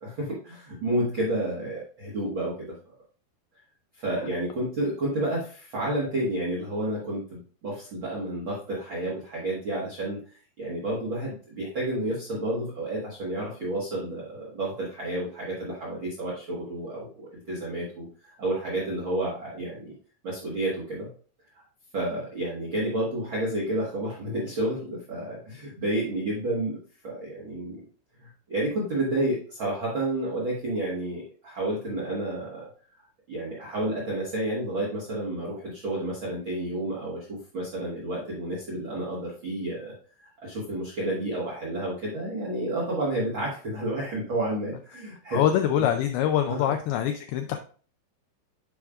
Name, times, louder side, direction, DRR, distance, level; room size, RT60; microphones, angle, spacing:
voice 1, 0.0-2.7 3.9-10.2 10.6-18.1 18.4-19.9 20.2-21.1 21.5-21.6 21.9-27.8 28.2-32.6 33.3-39.9 40.2-45.4 46.5-46.7, right 1 dB, 85° right, -5 dB, 1.1 m, -30 dB
voice 2, 45.3-47.6, left 10 dB, 80° left, 6 dB, 2.3 m, -24 dB
10.5 x 4.9 x 2.4 m, 0.41 s
omnidirectional pair, 4.7 m